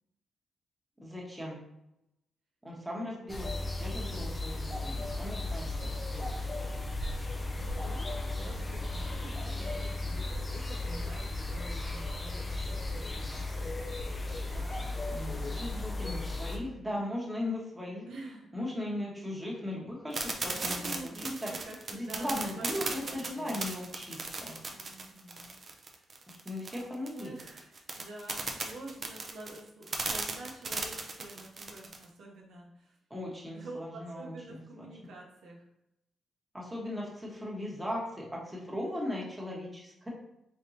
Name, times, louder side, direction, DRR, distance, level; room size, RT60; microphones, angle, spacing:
voice 1, 1.0-1.6 2.6-6.3 6.6-6.7 15.1-18.0 18.5-21.1 21.4-21.5 21.9-24.5 26.3-27.3 33.1-34.9 36.5-40.1, left 1 dB, 5° right, -4 dB, 1.3 m, -38 dB
sound 1, 3.3-16.6, left 2 dB, 20° left, 0.6 m, -35 dB
voice 2, 7.6-13.7 14.3-15.1 18.1-18.5 20.5-23.9 24.6-25.6 25.9-26.1 27.1-33.0 33.5-35.7, right 2 dB, 80° right, -2 dB, 0.9 m, -48 dB
sound 2, 20.1-32.0, right 3 dB, 35° right, 0.6 m, -36 dB
4.4 x 3.5 x 2.8 m, 0.87 s
cardioid pair, 125°, 0 cm